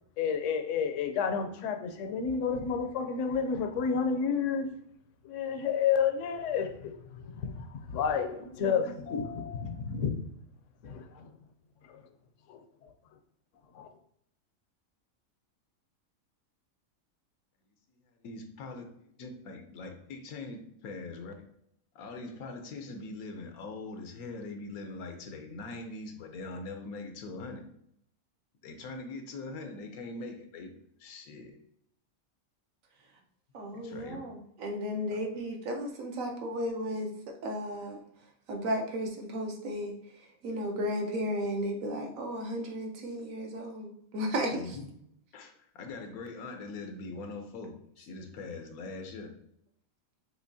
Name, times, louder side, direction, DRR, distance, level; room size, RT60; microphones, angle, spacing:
voice 1, 0.2-4.7 5.2-10.2 10.8-11.3 11.9-12.0 12.5-12.6 13.7-13.9, left 6 dB, 70° left, 6 dB, 0.9 m, -31 dB
voice 2, 18.2-18.8 19.2-20.6 20.8-21.3 22.0-27.6 28.6-30.7 31.0-31.5 33.8-34.2 44.5-44.8 45.3-45.5 45.8-49.3, left 3 dB, 85° left, 5 dB, 1.1 m, -42 dB
voice 3, 33.5-37.1 37.4-38.0 38.5-39.9 40.4-44.8, equal, 70° right, 2 dB, 1.2 m, -34 dB
6.2 x 2.9 x 2.7 m, 0.72 s
omnidirectional pair, 1.5 m